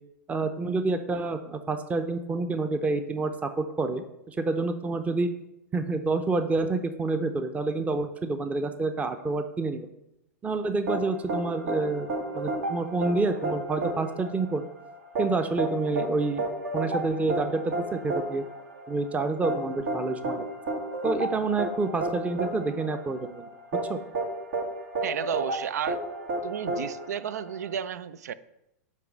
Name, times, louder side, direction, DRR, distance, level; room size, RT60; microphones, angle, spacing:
voice 1, 0.3-5.3 5.7-9.9 10.4-12.1 12.3-14.7 15.2-16.5 16.7-18.4 18.9-20.5 21.0-23.5 23.9-24.0, right 3 dB, 15° right, 9 dB, 0.6 m, -28 dB
sound 1, 10.9-27.7, right 2 dB, 70° right, 1.5 m, -32 dB
voice 2, 25.0-26.0 26.4-28.3, right 8 dB, 85° right, 16 dB, 0.4 m, -32 dB
9.1 x 3.2 x 6.0 m, 0.87 s
hypercardioid pair, 115°, 9 cm